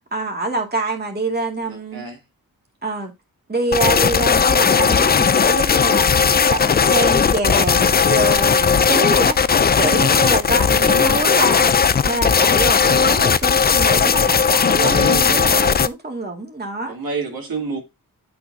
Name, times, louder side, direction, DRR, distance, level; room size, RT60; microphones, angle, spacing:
voice 1, 0.1-2.0 2.8-3.1 3.5-6.2 6.5-11.7 12.0-16.9, right 2 dB, 25° right, 2.2 m, -25 dB
voice 2, 1.7-2.2 5.8-6.0 9.8-10.1 13.9-14.2 14.7-15.7 16.8-17.8, right 3 dB, 70° right, 2.5 m, -29 dB
sound 1, 3.7-15.9, left 6 dB, 30° left, 0.4 m, -16 dB
8.5 x 6.1 x 2.7 m
cardioid pair, 75°, 36 cm